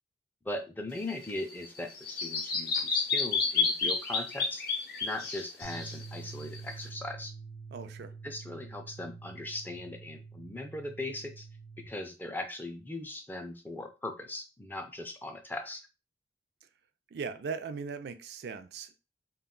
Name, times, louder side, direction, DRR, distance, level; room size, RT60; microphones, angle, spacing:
voice 1, 0.4-4.6 5.0-7.3 8.2-11.5 11.9-15.9, left 1 dB, 10° left, 5 dB, 0.3 m, -39 dB
Bird vocalization bird call bird song, 1.0-6.9, left 4 dB, 55° left, 0.6 m, -31 dB
sound 1, 5.6-11.9, right 4 dB, 80° right, 0.7 m, -46 dB
voice 2, 7.7-8.1 17.1-19.0, right 5 dB, 65° right, 9 dB, 0.3 m, -39 dB
2.3 x 2.2 x 3.6 m, 0.29 s
head